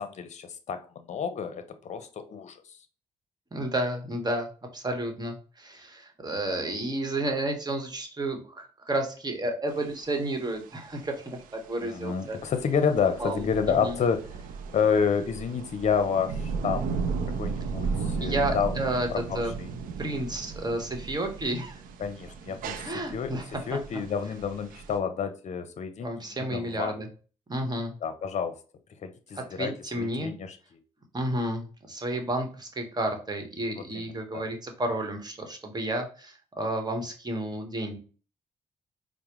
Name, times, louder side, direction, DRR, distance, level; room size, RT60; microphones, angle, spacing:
voice 1, 0.0-2.8 11.8-14.2 14.7-16.9 17.4-18.8 19.1-19.7 22.0-23.4 23.7-27.0 28.0-28.6 29.0-30.8 33.8-34.1 34.3-34.5, left 6 dB, 55° left, 10 dB, 0.7 m, -29 dB
voice 2, 3.5-12.4 13.2-13.4 13.7-14.0 18.2-19.5 20.0-21.8 22.8-23.4 26.0-27.1 27.5-27.9 29.4-30.3 31.1-38.0, right 1 dB, 30° right, 4 dB, 1.2 m, -31 dB
sound 1, 9.7-25.0, right 5 dB, 80° right, 0.5 m, -35 dB
4.6 x 2.1 x 3.0 m, 0.37 s
supercardioid pair, 60°, 14 cm